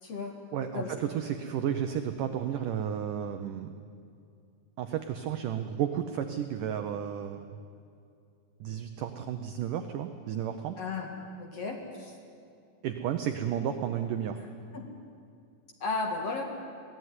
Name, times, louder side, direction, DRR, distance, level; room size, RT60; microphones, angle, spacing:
voice 1, 0.0-0.3 0.6-0.9 10.8-11.1 11.4-12.1 14.7-14.9 15.8-16.4, left 3 dB, 50° left, 2 dB, 2.4 m, -34 dB
voice 2, 0.5-3.7 4.8-7.6 8.6-10.8 12.8-14.4, right 9 dB, 80° right, 7 dB, 1.9 m, -32 dB
22.5 x 17.0 x 9.7 m, 2.4 s
omnidirectional pair, 4.8 m